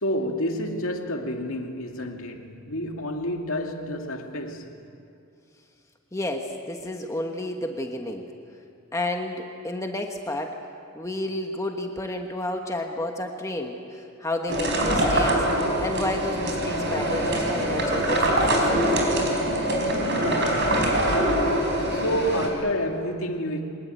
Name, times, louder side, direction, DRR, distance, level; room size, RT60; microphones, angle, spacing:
voice 1, 0.0-4.8 20.1-20.8 21.9-23.6, equal, 75° left, 2.4 m, -29 dB
voice 2, 6.1-8.3 8.9-10.6 10.9-15.4 15.8-18.9, left 1 dB, 15° left, 1.3 m, -31 dB
sound 1, 14.5-22.5, right 1 dB, 55° right, 4.4 m, -23 dB
24.0 x 21.0 x 9.1 m
head